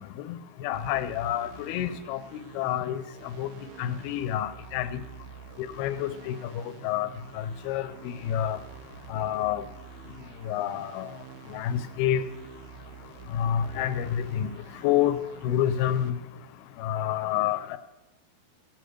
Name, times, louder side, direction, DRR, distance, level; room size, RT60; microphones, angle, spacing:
voice 1, 0.6-2.2 2.6-3.0 3.4-3.5 3.8-4.9 5.8-6.4 6.8-7.1 7.7-7.8 8.3-8.6 9.1-9.6 10.5-11.0 11.5-12.2 13.4-14.1 14.4-14.5 14.8-15.1 15.4-16.2 16.8-17.8, left 11 dB, 85° left, 12 dB, 2.6 m, -27 dB
sound 1, 0.7-16.1, right 9 dB, 80° right, 1.6 m, -48 dB
17.5 x 6.7 x 7.7 m, 1.0 s
omnidirectional pair, 4.4 m